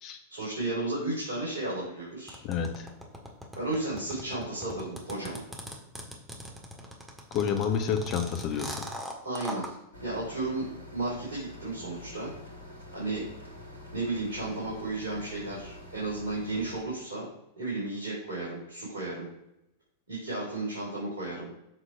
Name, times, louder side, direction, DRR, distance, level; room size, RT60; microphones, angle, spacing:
voice 1, 0.3-2.4 3.6-5.4 9.2-9.7 10.0-10.7 10.9-12.3 12.9-13.2 13.9-17.3 17.6-19.3 20.1-21.5, right 2 dB, 70° right, -6 dB, 3.4 m, -33 dB
sound 1, 2.3-9.7, equal, 5° right, 1.8 m, -40 dB
voice 2, 2.4-2.9 7.3-8.9, left 7 dB, 40° left, 6 dB, 1.2 m, -29 dB
sound 2, 9.9-16.8, left 1 dB, 75° left, 2.3 m, -47 dB
7.9 x 6.0 x 4.5 m, 0.86 s
figure-of-eight pair, 90°, 0 cm